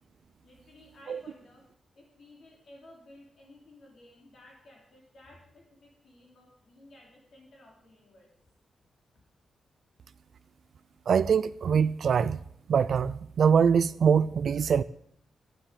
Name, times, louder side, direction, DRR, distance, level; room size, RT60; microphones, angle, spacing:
voice 1, 0.4-1.7 1.9-8.5, left 1 dB, 50° left, 3.1 m, -55 dB
voice 2, 11.1-12.4 12.7-14.8, right 7 dB, 55° right, 0.3 m, -23 dB
12.0 x 10.0 x 5.1 m
wide cardioid pair, 160°, 0 cm